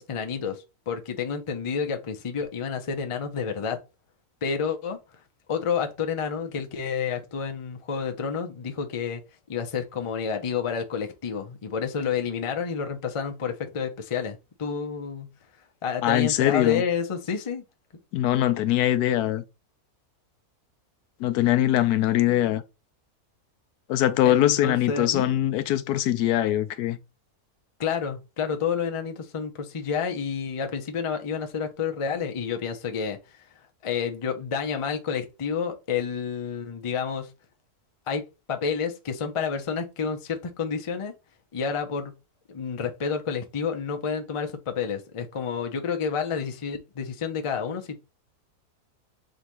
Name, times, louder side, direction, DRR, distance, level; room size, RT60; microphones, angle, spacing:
voice 1, 0.0-3.8 4.4-5.0 5.5-9.2 9.5-15.3 15.8-17.6 24.2-25.3 27.8-33.4 33.8-37.3 38.1-38.2 38.5-41.1 41.5-42.1 42.5-48.0, left 6 dB, 50° left, 0.3 m, -29 dB
voice 2, 16.0-16.8 18.1-19.4 21.2-22.6 23.9-27.0, left 13 dB, 90° left, 1.1 m, -22 dB
3.9 x 2.7 x 4.6 m
omnidirectional pair, 1.6 m